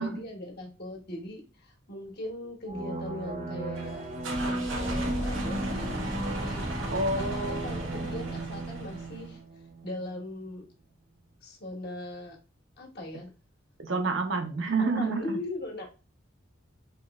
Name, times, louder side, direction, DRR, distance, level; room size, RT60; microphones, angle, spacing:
voice 1, 0.0-4.1 4.4-6.6 7.1-10.6 11.4-12.4 12.8-13.3 14.8-15.9, left 1 dB, 55° left, 1 dB, 1.4 m, -39 dB
sound 1, 2.7-10.0, right 2 dB, 40° right, 0.6 m, -35 dB
sound 2, 3.8-9.3, right 1 dB, 90° right, 1.1 m, -35 dB
voice 2, 6.9-7.7 13.8-15.4, right 3 dB, 65° right, 5 dB, 0.9 m, -29 dB
4.4 x 3.1 x 2.4 m, 0.31 s
head